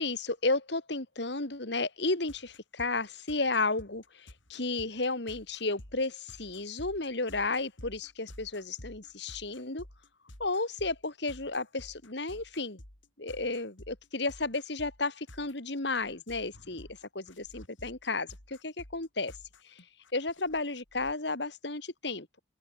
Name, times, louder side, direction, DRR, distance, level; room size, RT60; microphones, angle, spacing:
voice 1, 0.0-9.9 10.4-12.8 13.2-19.3 19.6-19.8 20.1-22.3, left 3 dB, 65° left, 2.4 m, -33 dB
sound 1, 2.3-21.1, left 1 dB, 80° left, 4.6 m, -51 dB
open air
head